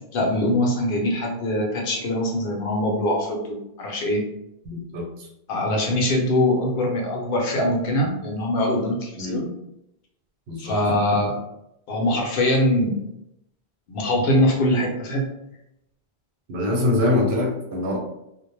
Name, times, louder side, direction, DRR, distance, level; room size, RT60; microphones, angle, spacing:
voice 1, 0.1-4.2 5.5-9.5 10.6-11.4 11.9-12.9 13.9-15.3, left 1 dB, 65° left, 0 dB, 0.8 m, -22 dB
voice 2, 4.6-5.3 9.2-9.4 10.5-10.8 16.5-18.0, left 2 dB, 85° right, 0 dB, 0.9 m, -24 dB
2.1 x 2.0 x 3.0 m, 0.83 s
omnidirectional pair, 1.0 m